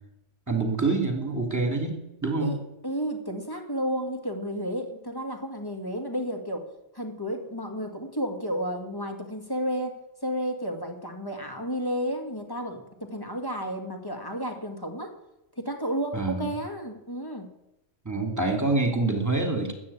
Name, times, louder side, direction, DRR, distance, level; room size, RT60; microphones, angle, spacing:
voice 1, 0.5-2.6 16.1-16.5 18.0-19.7, right 3 dB, 15° right, 4 dB, 2.6 m, -26 dB
voice 2, 2.4-6.7 6.9-15.2 15.6-17.5, equal, 15° left, 4 dB, 2.0 m, -32 dB
13.0 x 9.0 x 8.5 m, 0.91 s
omnidirectional pair, 1.3 m